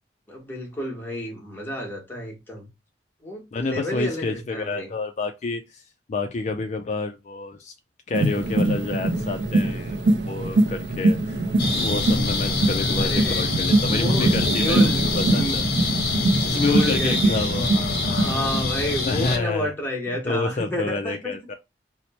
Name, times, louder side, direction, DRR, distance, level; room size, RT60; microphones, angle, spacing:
voice 1, 0.3-2.7 3.2-4.9 13.0-13.5 13.9-15.6 16.3-17.5 18.0-21.4, equal, 10° left, 1.1 m, -30 dB
voice 2, 3.5-5.8 6.1-7.7 8.1-10.0 10.3-11.5 11.7-15.6 16.5-18.6 19.0-19.7 20.2-21.5, left 3 dB, 40° left, 0.3 m, -29 dB
sound 1, 8.1-18.6, right 2 dB, 75° right, 0.4 m, -23 dB
sound 2, 11.6-19.4, left 3 dB, 60° left, 0.8 m, -25 dB
2.9 x 2.0 x 4.1 m
head